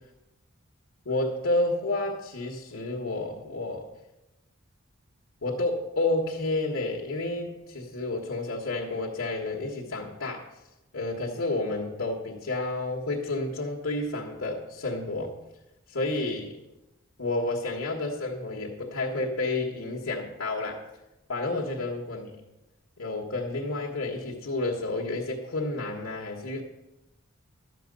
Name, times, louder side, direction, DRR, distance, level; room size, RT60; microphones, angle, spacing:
voice 1, 1.0-3.9 5.4-10.5 10.9-15.4 15.9-16.6 17.2-20.8 21.3-22.4 23.0-26.6, left 2 dB, 85° left, -4 dB, 1.5 m, -30 dB
12.0 x 7.5 x 5.3 m, 0.99 s
head